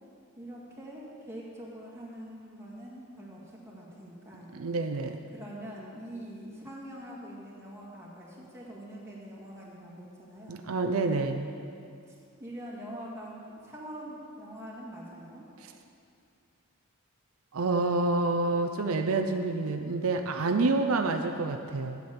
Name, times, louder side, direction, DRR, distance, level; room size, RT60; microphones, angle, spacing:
voice 1, 0.4-4.5 5.3-10.7 12.4-15.5, equal, 15° right, -5 dB, 2.0 m, -44 dB
voice 2, 4.5-5.2 10.5-11.5 17.5-22.0, right 3 dB, 85° right, 6 dB, 0.5 m, -28 dB
8.4 x 7.7 x 7.2 m, 2.5 s
head